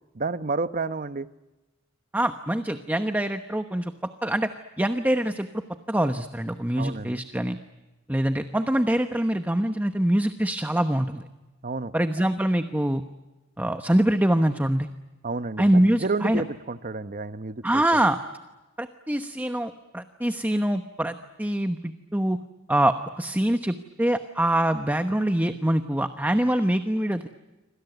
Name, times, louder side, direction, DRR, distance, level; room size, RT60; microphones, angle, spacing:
voice 1, 0.1-1.3 6.8-7.2 11.6-12.3 15.2-17.8, right 3 dB, 40° right, 12 dB, 0.9 m, -30 dB
voice 2, 2.1-3.9 4.2-4.5 4.8-5.6 5.9-7.6 8.1-11.2 11.9-13.0 13.6-14.9 15.6-16.4 17.6-18.2 18.8-22.4 22.7-27.3, right 1 dB, 10° right, 8 dB, 1.0 m, -24 dB
28.0 x 25.5 x 8.1 m, 1.1 s
head